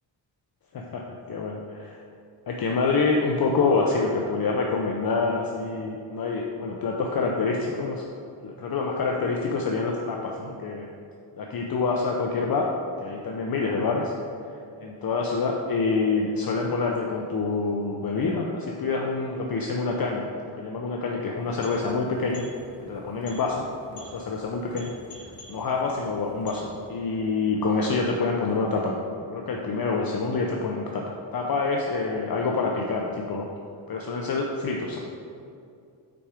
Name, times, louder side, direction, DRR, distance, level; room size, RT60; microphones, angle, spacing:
voice 1, 1.3-2.0 2.5-8.0 8.4-10.9 11.4-12.7 13.0-14.1 14.8-20.3 20.5-22.5 22.8-23.6 23.9-24.9 25.2-26.6 26.9-33.5 33.9-35.0, left 4 dB, 50° left, 0 dB, 0.6 m, -27 dB
sound 1, 21.3-27.1, left 2 dB, 85° left, 1.6 m, -49 dB
5.9 x 4.9 x 4.8 m, 2.4 s
wide cardioid pair, 105°, 45 cm